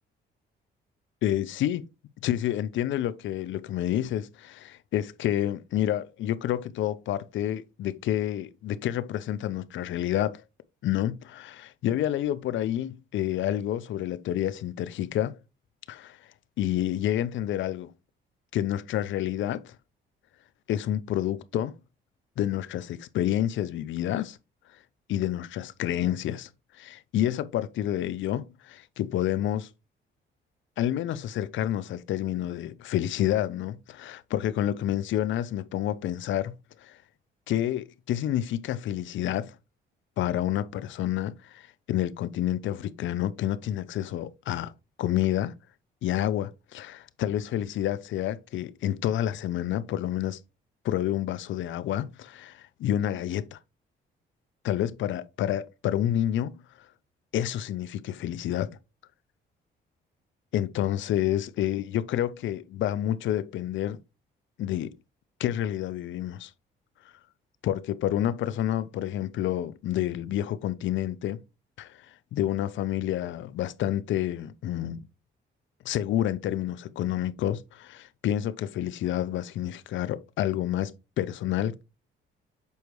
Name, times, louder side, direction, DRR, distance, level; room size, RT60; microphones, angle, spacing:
voice 1, 1.2-1.9 2.2-10.4 10.8-15.4 15.9-16.2 16.6-17.9 18.5-19.7 20.7-21.8 22.4-24.4 25.1-26.5 26.8-29.7 30.8-37.0 37.5-39.5 40.2-44.7 45.0-45.6 46.0-50.4 50.8-53.6 54.6-56.6 57.3-58.8 60.5-64.0 64.6-64.9 65.4-66.5 67.6-71.4 71.8-71.9 72.3-75.0 75.8-81.8, left 12 dB, 75° left, 0.6 m, -29 dB
6.9 x 4.6 x 3.1 m
cardioid pair, 90°, 20 cm